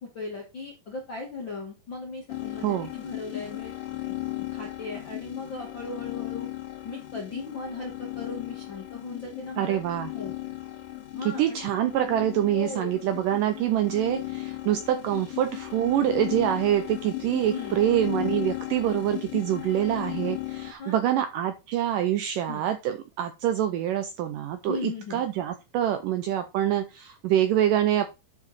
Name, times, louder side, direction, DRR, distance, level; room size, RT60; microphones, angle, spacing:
voice 1, 0.0-3.7 4.5-6.5 6.8-9.8 10.1-10.3 11.1-11.7 12.5-13.0 15.1-15.3 17.4-17.8 20.8-21.2 22.5-22.7 24.7-25.2, left 4 dB, 45° left, -1 dB, 1.6 m, -37 dB
sound 1, 2.3-20.7, left 16 dB, 65° left, 2.6 m, -36 dB
voice 2, 9.6-10.1 11.3-28.1, right 11 dB, 90° right, 9 dB, 1.9 m, -25 dB
11.0 x 4.8 x 4.1 m, 0.26 s
omnidirectional pair, 4.6 m